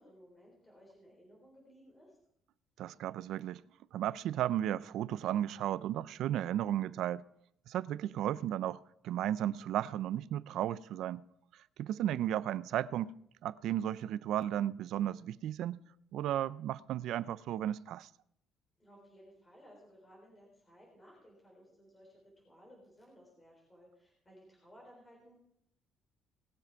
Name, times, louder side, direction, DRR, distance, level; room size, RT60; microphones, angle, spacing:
voice 1, 0.0-2.2 18.8-25.4, equal, 15° left, 3.8 m, -59 dB
voice 2, 2.8-3.6 3.9-7.2 7.7-11.2 11.8-13.1 13.4-15.8 16.1-18.1, right 11 dB, 70° right, 0.4 m, -34 dB
19.0 x 7.5 x 4.6 m
cardioid pair, 155°, 0 cm